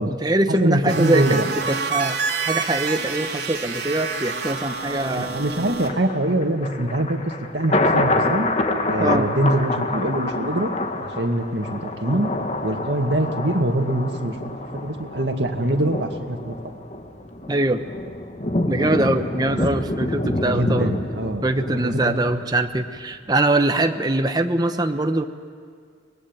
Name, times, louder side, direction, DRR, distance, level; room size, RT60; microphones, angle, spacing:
voice 1, 0.0-1.4 1.7-5.3 9.0-9.3 17.5-17.8 18.7-20.9 21.4-25.3, right 1 dB, 25° right, 7 dB, 1.0 m, -22 dB
voice 2, 0.6-1.5 5.1-8.5 8.9-12.3 12.6-16.6 19.7-19.8 20.4-21.4 21.8-22.1, right 1 dB, 85° right, 4 dB, 2.1 m, -24 dB
sound 1, 0.9-5.9, right 4 dB, 65° right, 3.4 m, -28 dB
Thunder, 5.8-22.9 23.3-23.4, left 2 dB, 40° left, 1.5 m, -27 dB
24.0 x 20.0 x 9.0 m, 2.1 s
head